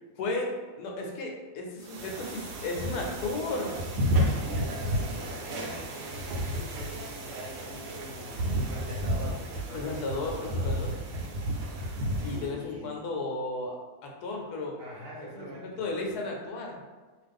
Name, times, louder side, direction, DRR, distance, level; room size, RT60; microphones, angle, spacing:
voice 1, 0.2-0.5 0.8-3.8 9.7-10.9 12.2-13.8 14.0-14.8 15.3-16.8, left 2 dB, 80° left, 0 dB, 1.1 m, -34 dB
sound 1, 1.8-12.5, equal, 85° right, 1.1 m, -32 dB
voice 2, 4.3-11.7 12.2-13.0 14.8-15.9, equal, 65° right, -4 dB, 1.0 m, -44 dB
2.6 x 2.4 x 3.4 m, 1.3 s
omnidirectional pair, 1.7 m